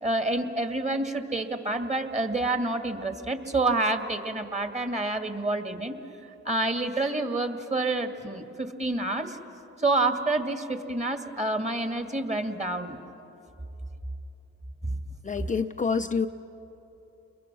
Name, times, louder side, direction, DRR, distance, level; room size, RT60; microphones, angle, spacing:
voice 1, 0.0-6.0 6.4-9.4 9.8-13.0 14.8-15.0, right 2 dB, 25° right, 6 dB, 2.2 m, -28 dB
voice 2, 15.2-16.3, left 5 dB, 25° left, 7 dB, 0.6 m, -27 dB
29.5 x 22.0 x 6.2 m, 3.0 s
supercardioid pair, 65°, 29 cm